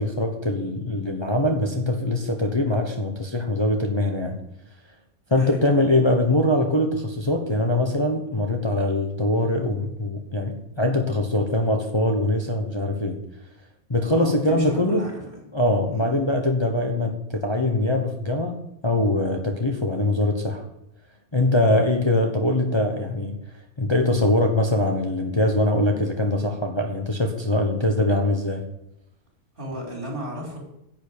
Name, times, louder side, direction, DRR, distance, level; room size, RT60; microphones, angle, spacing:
voice 1, 0.0-4.4 5.3-13.2 13.9-15.1 15.5-18.6 18.8-20.7 21.3-23.4 23.8-28.6, left 1 dB, 20° left, 3 dB, 1.1 m, -22 dB
voice 2, 14.1-15.4 15.9-16.1 29.6-30.6, right 1 dB, 40° right, -1 dB, 3.6 m, -34 dB
10.5 x 7.1 x 8.6 m, 0.83 s
omnidirectional pair, 1.5 m